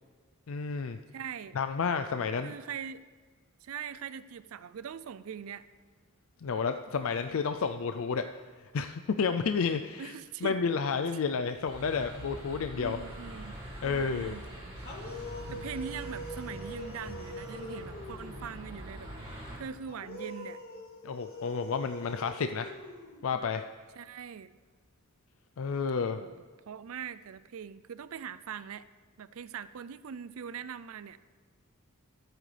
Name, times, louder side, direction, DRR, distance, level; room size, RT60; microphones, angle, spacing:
voice 1, 0.5-1.0 1.6-2.5 6.4-8.2 8.7-10.1 10.4-13.0 13.8-14.3 21.0-22.7 23.2-23.6 25.6-26.2, left 5 dB, 65° left, 8 dB, 0.4 m, -31 dB
voice 2, 1.1-1.6 2.4-3.0 3.6-5.7 10.0-10.6 12.8-13.6 13.8-14.4 15.2-20.6 24.0-24.5 26.2-28.9 29.2-31.2, right 7 dB, 75° right, 15 dB, 0.4 m, -42 dB
sound 1, 11.7-19.6, equal, 25° right, 3.9 m, -43 dB
sound 2, 14.8-18.5 19.9-23.5, equal, 50° left, 2.4 m, -44 dB
24.5 x 8.9 x 3.4 m, 1.5 s
head